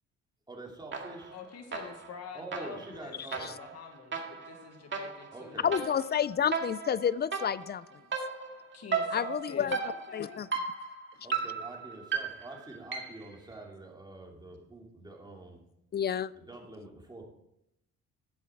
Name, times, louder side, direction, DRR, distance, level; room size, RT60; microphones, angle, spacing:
voice 1, 0.5-1.4 2.3-3.5 5.3-5.7 11.2-15.6 16.3-17.3, right 2 dB, 15° right, 0 dB, 2.8 m, -46 dB
sound 1, 0.9-1.4 1.7-13.3, right 5 dB, 40° right, 2.0 m, -36 dB
voice 2, 1.3-5.6 8.7-10.4, left 6 dB, 55° left, 5 dB, 1.5 m, -46 dB
voice 3, 5.6-7.8 9.1-9.8 10.1-10.5 15.9-16.3, left 8 dB, 35° left, 19 dB, 0.4 m, -29 dB
11.0 x 8.2 x 4.6 m, 0.79 s
cardioid pair, 90°, 30 cm